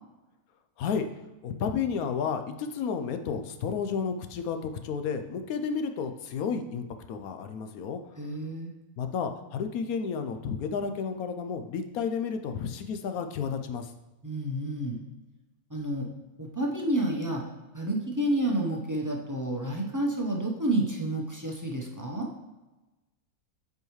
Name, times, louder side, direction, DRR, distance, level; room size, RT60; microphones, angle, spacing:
voice 1, 1.4-8.0 9.0-13.9, left 6 dB, 75° left, 7 dB, 1.0 m, -32 dB
voice 2, 8.2-8.7 14.2-15.0 15.7-16.1 16.4-17.4 17.7-22.3, right 1 dB, 20° right, -1 dB, 0.6 m, -29 dB
7.8 x 4.7 x 3.1 m, 1.1 s
omnidirectional pair, 1.6 m